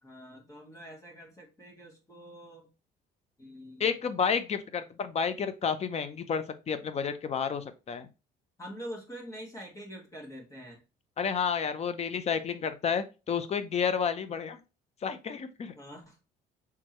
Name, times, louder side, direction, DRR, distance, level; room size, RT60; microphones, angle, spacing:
voice 1, 0.0-2.7 3.4-3.9 8.6-10.8 15.8-16.2, equal, 20° left, -1 dB, 1.6 m, -45 dB
voice 2, 3.8-8.1 11.2-14.6 15.0-15.7, left 6 dB, 40° left, 11 dB, 0.7 m, -31 dB
4.6 x 3.6 x 3.0 m, 0.29 s
cardioid pair, 110°, 17 cm